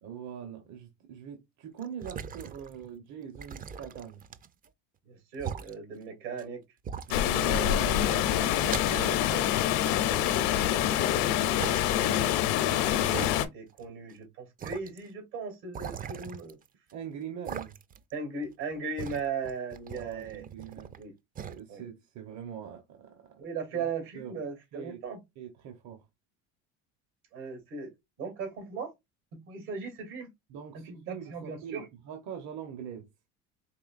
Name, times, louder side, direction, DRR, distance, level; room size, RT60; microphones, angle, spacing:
voice 1, 0.0-4.2 7.1-8.1 8.4-9.2 16.9-17.8 19.9-20.9 21.5-23.4 23.7-23.9 24.1-24.4 24.7-25.0 25.4-26.0 30.5-33.1, right 8 dB, 55° right, 1.0 m, -43 dB
sound 1, 1.8-2.9 3.4-4.7 5.3-5.7 6.4-6.5 6.8-7.6 7.9-9.5 9.9-10.9 11.6-11.8 12.5-12.6 13.1-13.9 14.1-14.2 14.6-15.0 15.7-16.9 17.5-18.1 18.4-21.0 21.4-21.6, right 7 dB, 25° right, 0.4 m, -41 dB
voice 2, 5.0-6.6 7.4-9.5 10.6-16.6 18.1-21.1 21.7-21.8 23.4-25.2 27.3-27.9 28.2-28.9 29.3-30.3 30.7-31.8, right 5 dB, 80° right, 2.7 m, -38 dB
Water, 7.1-13.5, left 12 dB, 75° left, 0.7 m, -26 dB
4.7 x 3.2 x 2.5 m
supercardioid pair, 105°, 33 cm